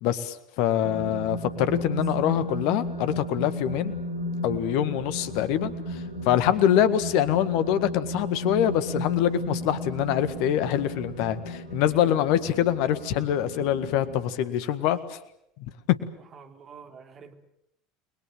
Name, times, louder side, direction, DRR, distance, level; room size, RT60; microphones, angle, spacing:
voice 1, 0.0-4.0 4.4-15.2 15.6-15.7, left 11 dB, 55° left, 14 dB, 1.8 m, -25 dB
sound 1, 0.8-14.2, equal, 85° left, 3.7 m, -34 dB
voice 2, 16.3-17.3, right 6 dB, 35° right, 6 dB, 3.2 m, -47 dB
30.0 x 22.0 x 7.7 m, 0.77 s
figure-of-eight pair, 70°, 0 cm